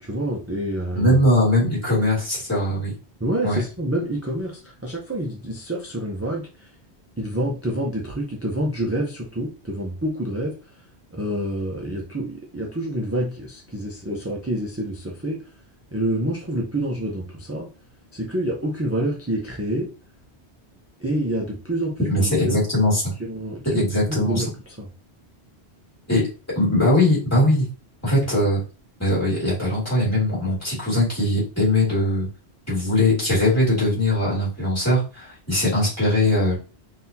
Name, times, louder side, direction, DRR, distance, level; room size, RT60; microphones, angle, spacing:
voice 1, 0.0-1.2 3.2-6.7 7.2-10.8 11.1-15.4 15.9-17.7 18.1-19.9 21.0-22.6 23.2-24.5 24.8-24.9, right 1 dB, 15° right, -1 dB, 0.5 m, -27 dB
voice 2, 1.0-2.9 3.4-3.6 22.1-23.1 23.7-24.4 26.1-26.3 26.5-27.7 28.0-28.6 29.0-32.3 32.7-36.6, left 1 dB, 15° left, -7 dB, 2.1 m, -20 dB
4.0 x 2.8 x 2.7 m, 0.34 s
omnidirectional pair, 1.1 m